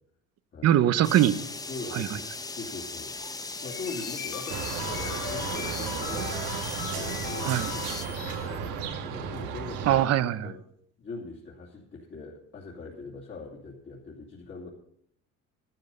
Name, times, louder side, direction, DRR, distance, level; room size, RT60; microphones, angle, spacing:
voice 1, 0.6-1.3 1.9-2.1 7.4-7.7 9.9-10.5, right 12 dB, 55° right, 14 dB, 0.8 m, -22 dB
sound 1, 1.0-8.1, left 3 dB, 10° left, 0.8 m, -38 dB
voice 2, 1.7-3.1 3.6-6.4 6.9-10.0 10.4-10.6 11.0-14.7, left 3 dB, 35° left, -5 dB, 2.8 m, -41 dB
sound 2, 3.6-8.6, left 11 dB, 85° left, 1.5 m, -39 dB
sound 3, 4.5-10.1, right 7 dB, 90° right, 1.7 m, -34 dB
12.0 x 12.0 x 5.5 m, 0.68 s
cardioid pair, 125°, 31 cm